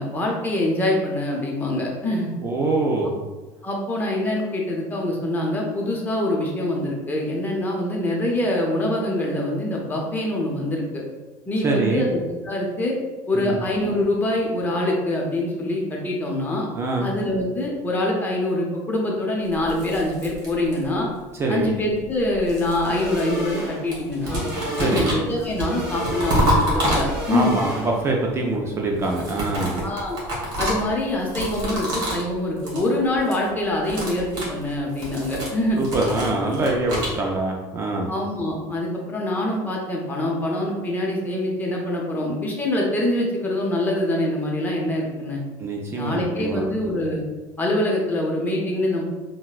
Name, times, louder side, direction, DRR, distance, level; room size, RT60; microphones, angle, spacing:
voice 1, 0.0-2.3 3.6-11.0 11.5-12.2 12.4-13.0 13.3-16.7 17.0-21.1 21.5-24.4 24.8-27.5 29.8-30.2 30.6-35.8 38.1-45.4 45.9-47.2 47.6-49.0, left 1 dB, 20° left, -1 dB, 0.7 m, -24 dB
voice 2, 2.4-3.2 11.6-12.1 13.3-13.5 16.8-17.1 21.4-21.7 24.7-25.1 27.3-29.8 35.8-38.1 45.6-46.7, right 2 dB, 30° right, 0 dB, 0.4 m, -24 dB
sound 1, 19.5-21.1 22.0-23.6 23.9-27.5 29.0-32.3 32.6-32.9 33.2-33.5 33.8-37.2, equal, 50° right, 1.5 m, -28 dB
sound 2, 22.8-28.2, equal, 5° right, 1.3 m, -33 dB
3.9 x 2.1 x 2.4 m, 1.2 s
supercardioid pair, 120°, 9 cm